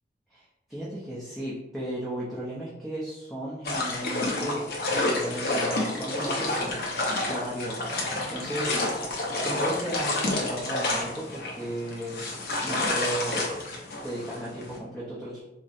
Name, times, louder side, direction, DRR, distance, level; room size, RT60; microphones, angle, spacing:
voice 1, 0.7-6.8 7.3-12.2 12.6-13.5 14.0-15.4, right 1 dB, ahead, -10 dB, 0.5 m, -35 dB
sound 1, 3.6-14.8, left 2 dB, 60° left, 0.6 m, -29 dB
4.0 x 2.0 x 2.4 m, 0.98 s
head